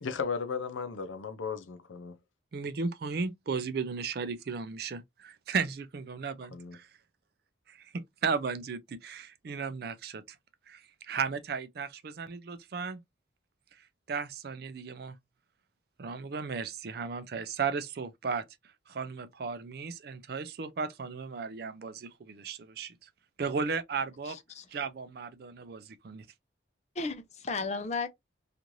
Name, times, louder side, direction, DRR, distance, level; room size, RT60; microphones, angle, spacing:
voice 1, 0.0-2.2 6.5-6.8, left 5 dB, 90° left, 0.6 m, -35 dB
voice 2, 2.5-6.9 7.7-10.4 10.7-13.0 14.1-15.1 16.0-18.4 18.9-22.9 23.4-24.4 24.7-26.3, right 5 dB, 55° right, 0.4 m, -35 dB
voice 3, 24.2-24.7 27.0-28.1, left 4 dB, 35° left, 0.5 m, -34 dB
3.0 x 2.5 x 2.6 m
head